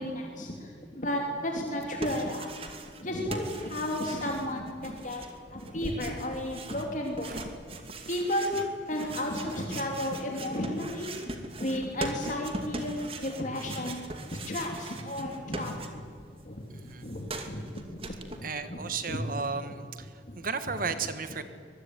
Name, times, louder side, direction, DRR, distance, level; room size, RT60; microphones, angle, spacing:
voice 1, 0.0-2.5 3.0-7.4 7.7-7.8 8.1-11.2 11.6-13.0 13.2-14.0 14.3-15.9 16.4-17.6 18.3-18.8 19.1-19.2 19.6-19.7 20.3-20.4 20.7-20.9, left 1 dB, 45° left, 1 dB, 3.1 m, -33 dB
sound 1, 1.7-3.0 3.3-16.3 16.5-18.4, right 2 dB, 30° right, 2.6 m, -41 dB
voice 2, 18.4-20.1 20.4-21.4, right 5 dB, 50° right, 10 dB, 1.5 m, -34 dB
24.5 x 22.0 x 9.8 m, 2.1 s
head